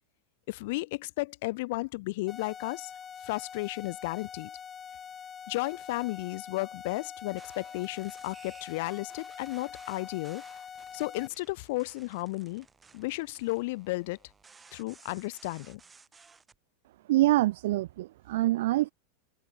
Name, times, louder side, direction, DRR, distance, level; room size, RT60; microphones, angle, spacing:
voice 1, 0.5-2.9 3.2-4.5 5.5-10.4 10.9-12.7 12.9-14.2 14.7-15.8, left 22 dB, 55° left, 2.0 m, -33 dB
sound 1, 2.3-11.3, left 7 dB, 20° left, 4.4 m, -45 dB
sound 2, 7.3-16.6, right 5 dB, 10° right, 5.2 m, -57 dB
voice 2, 17.1-18.9, right 16 dB, 65° right, 0.4 m, -25 dB
supercardioid pair, 155°, 0 cm